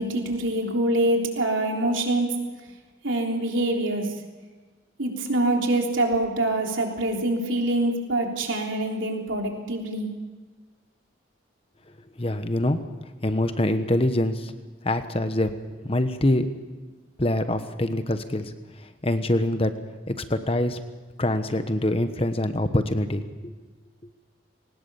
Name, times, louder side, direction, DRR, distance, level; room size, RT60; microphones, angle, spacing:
voice 1, 0.0-2.4 3.0-4.1 5.0-10.1, right 1 dB, 85° right, 1 dB, 3.6 m, -25 dB
voice 2, 12.2-12.8 13.2-14.5 14.8-15.6 15.8-16.5 17.2-18.5 19.0-19.7 20.1-20.8 21.2-23.5, left 1 dB, 30° left, 9 dB, 1.2 m, -24 dB
21.5 x 19.0 x 7.1 m, 1.3 s
head